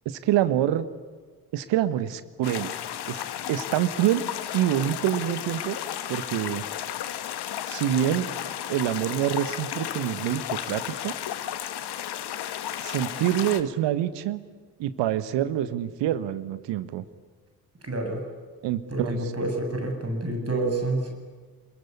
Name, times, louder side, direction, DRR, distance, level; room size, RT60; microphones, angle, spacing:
voice 1, 0.0-0.9 1.5-2.7 3.1-3.2 3.5-4.2 4.5-5.8 6.1-6.6 7.7-8.3 8.7-11.1 12.8-14.4 14.8-17.0 18.6-19.3, right 12 dB, 65° right, 13 dB, 1.5 m, -26 dB
sound 1, 2.4-13.6, left 11 dB, 55° left, 1.6 m, -33 dB
voice 2, 17.8-18.2 18.9-21.1, right 2 dB, 30° right, 4 dB, 8.0 m, -28 dB
27.0 x 22.0 x 9.7 m, 1.5 s
figure-of-eight pair, 40°, 47 cm